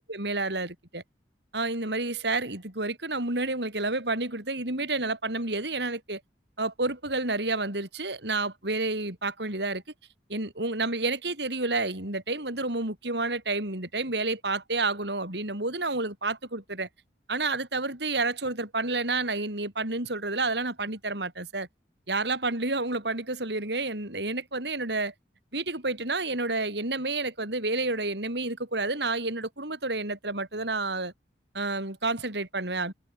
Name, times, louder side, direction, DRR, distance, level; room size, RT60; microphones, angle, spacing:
voice 1, 0.1-1.0 1.5-6.2 6.6-9.8 10.3-16.9 17.3-21.7 22.1-25.1 25.5-31.1 31.5-32.9, right 2 dB, 70° right, 6.1 m, -30 dB
head